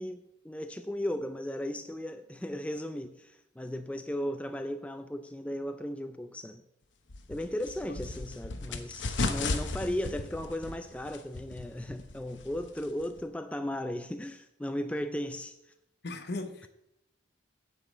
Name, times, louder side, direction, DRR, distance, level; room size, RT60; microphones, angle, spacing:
voice 1, 0.0-6.6 7.3-15.6, left 1 dB, 5° left, 0.4 m, -36 dB
sound 1, 7.1-13.2, left 3 dB, 85° left, 0.9 m, -36 dB
voice 2, 7.9-8.4 16.0-16.7, left 2 dB, 60° left, 0.8 m, -39 dB
9.4 x 5.0 x 7.2 m
head